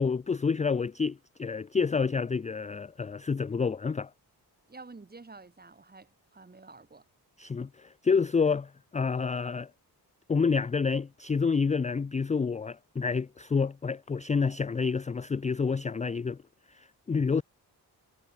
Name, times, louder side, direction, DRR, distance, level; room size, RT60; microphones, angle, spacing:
voice 1, 0.0-4.1 7.4-9.7 10.3-16.4 16.7-17.4, left 5 dB, 20° left, 0.4 m, -28 dB
voice 2, 4.7-7.0, right 3 dB, 25° right, 4.3 m, -49 dB
wide cardioid pair, 155°, 39 cm